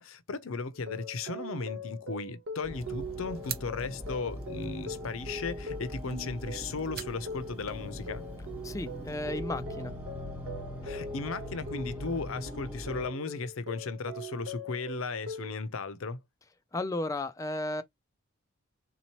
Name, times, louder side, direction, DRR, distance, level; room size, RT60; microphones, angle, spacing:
voice 1, 0.0-8.2 10.8-16.2, left 4 dB, 75° left, 0.6 m, -36 dB
sound 1, 0.7-15.6, equal, 65° right, 1.3 m, -42 dB
sound 2, 2.6-13.1, equal, 5° right, 1.1 m, -42 dB
sound 3, 2.7-9.2, right 9 dB, 45° right, 0.8 m, -48 dB
voice 2, 8.6-9.9 16.7-17.8, left 2 dB, 15° left, 0.3 m, -34 dB
3.9 x 2.8 x 3.0 m
head